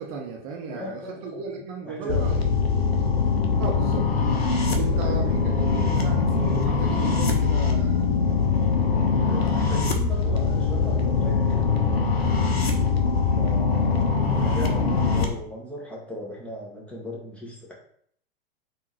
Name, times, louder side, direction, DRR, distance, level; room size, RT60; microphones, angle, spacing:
voice 1, 0.0-2.5 3.6-4.1 4.7-8.0, right 5 dB, 40° right, 0 dB, 0.6 m, -35 dB
voice 2, 0.7-1.4 1.8-2.4 4.9-5.2 9.2-11.7 13.3-17.7, left 1 dB, 5° left, -5 dB, 0.8 m, -37 dB
sound 1, 2.1-15.3, left 5 dB, 85° left, 0.6 m, -22 dB
3.6 x 2.6 x 3.0 m, 0.63 s
figure-of-eight pair, 100°, 30 cm